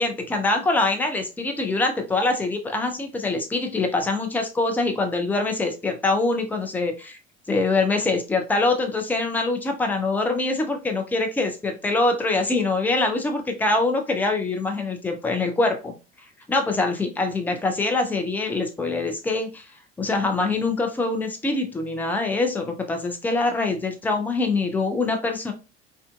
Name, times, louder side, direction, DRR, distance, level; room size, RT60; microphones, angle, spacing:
voice 1, 0.0-7.2 7.5-15.9 16.5-19.7 20.0-25.5, left 3 dB, 5° left, 5 dB, 0.4 m, -24 dB
2.5 x 2.3 x 2.2 m, 0.30 s
figure-of-eight pair, 60°, 32 cm